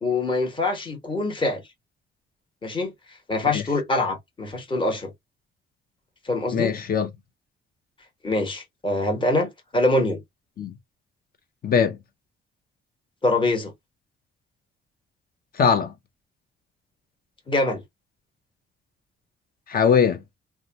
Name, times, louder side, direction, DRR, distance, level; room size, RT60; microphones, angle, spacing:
voice 1, 0.0-1.6 2.6-2.9 3.3-5.1 6.2-6.7 8.2-10.2 13.2-13.7 17.5-17.8, left 2 dB, 25° left, 1.1 m, -24 dB
voice 2, 6.5-7.1 10.6-10.7 11.6-12.0 15.6-15.9 19.7-20.2, left 6 dB, 50° left, 0.7 m, -20 dB
2.8 x 2.3 x 2.7 m
cardioid pair, 90°, 20 cm